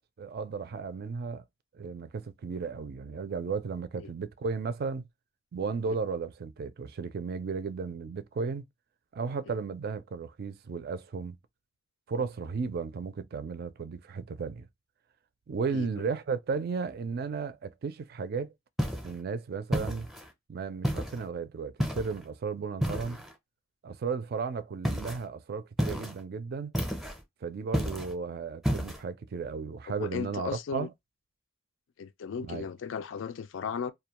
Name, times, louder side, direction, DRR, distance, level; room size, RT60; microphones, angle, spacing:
voice 1, 0.2-1.4 1.7-5.1 5.5-8.6 9.1-11.4 12.1-14.7 15.5-18.5 19.0-20.1 20.5-23.2 23.8-26.7 27.4-30.9 32.4-32.7, right 5 dB, 50° right, 0.4 m, -34 dB
sound 1, 18.8-19.2 19.7-20.3 20.8-21.2 21.8-22.2 22.8-23.3 24.8-25.2 25.8-26.2 26.7-27.2 27.7-28.1 28.6-29.0, equal, ahead, 0.5 m, -31 dB
voice 2, 30.0-30.9 32.0-33.9, left 6 dB, 70° left, 0.4 m, -36 dB
2.3 x 2.2 x 2.8 m
head